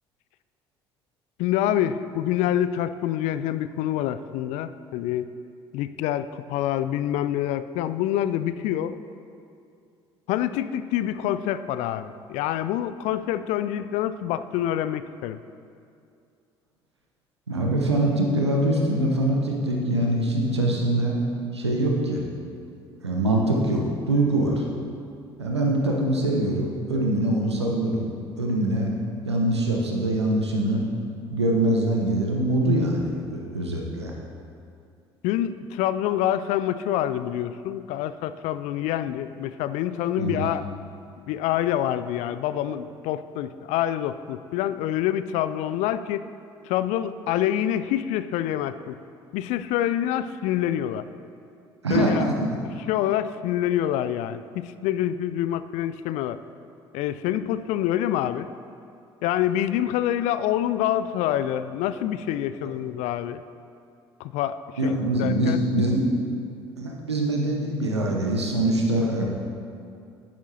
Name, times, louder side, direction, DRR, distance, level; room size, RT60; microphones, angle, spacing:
voice 1, 1.4-5.3 5.7-8.9 10.3-15.4 35.2-40.6 41.3-46.2 46.7-49.0 49.3-51.1 51.9-52.3 52.9-56.4 56.9-58.5 59.2-63.4 64.2-65.6, left 11 dB, 60° left, 13 dB, 0.4 m, -26 dB
voice 2, 17.5-21.2 21.5-22.2 23.0-24.6 25.4-28.1 28.4-28.9 29.3-30.8 31.3-34.1 40.2-40.4 51.8-52.6 62.6-62.7 64.8-66.0 66.8-69.2, right 1 dB, 85° right, -1 dB, 1.0 m, -23 dB
10.5 x 10.0 x 2.9 m, 2.4 s
figure-of-eight pair, 55°, 14 cm